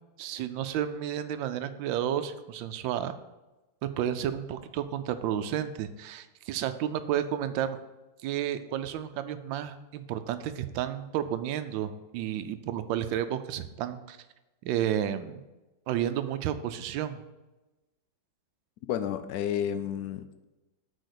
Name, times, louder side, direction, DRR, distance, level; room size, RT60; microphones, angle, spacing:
voice 1, 0.2-3.1 3.8-7.8 8.2-14.2 14.6-15.4 15.9-17.2, right 10 dB, 80° right, 11 dB, 1.3 m, -31 dB
voice 2, 18.9-20.4, left 9 dB, 75° left, 10 dB, 0.8 m, -31 dB
6.4 x 4.4 x 6.5 m, 1.1 s
omnidirectional pair, 2.1 m